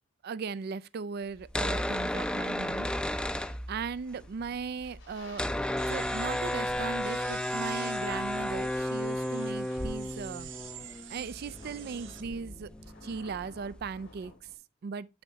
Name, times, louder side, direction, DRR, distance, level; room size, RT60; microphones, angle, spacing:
voice 1, 0.2-2.9 3.3-5.4 5.9-10.5 11.1-12.7 13.0-14.3 14.8-15.1, right 5 dB, 55° right, 0.4 m, -38 dB
sound 1, 1.4-4.1 4.4-4.5 4.7-14.1, left 1 dB, 5° left, 0.5 m, -33 dB
sound 2, 4.1-14.6, left 1 dB, 80° left, 2.0 m, -50 dB
sound 3, 5.8-12.2, right 10 dB, 80° right, 0.8 m, -47 dB
11.0 x 4.1 x 2.7 m
head